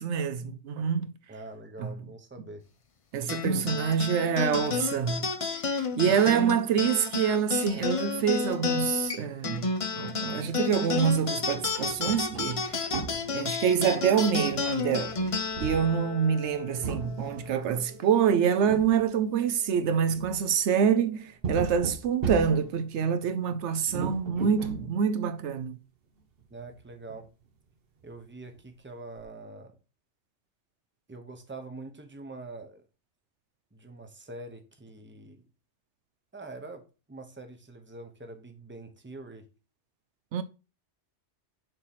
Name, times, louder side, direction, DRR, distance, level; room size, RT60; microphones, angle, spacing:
voice 1, 0.0-1.1 1.8-1.9 3.1-5.3 5.7-12.9 13.3-15.2 15.6-25.8 40.3-40.4, right 7 dB, 80° right, 0.9 m, -26 dB
voice 2, 1.3-2.6 3.3-3.9 6.0-6.2 13.0-13.5 26.5-27.3 28.0-29.7 31.1-32.8 33.7-35.5 36.3-36.8 37.1-39.5, right 2 dB, 10° right, 0.9 m, -44 dB
sound 1, 3.3-18.0, left 4 dB, 40° left, 0.6 m, -32 dB
sound 2, 10.9-11.2 11.5-13.2 14.3-16.0 16.5-17.5 18.1-18.2 18.7-19.1 20.2-20.4 21.4-22.8 23.9-24.8 26.4-26.8 27.1-27.2 28.1-28.2 28.6-28.7 29.2-29.3, right 4 dB, 55° right, 1.1 m, -36 dB
6.6 x 3.0 x 5.7 m
omnidirectional pair, 1.2 m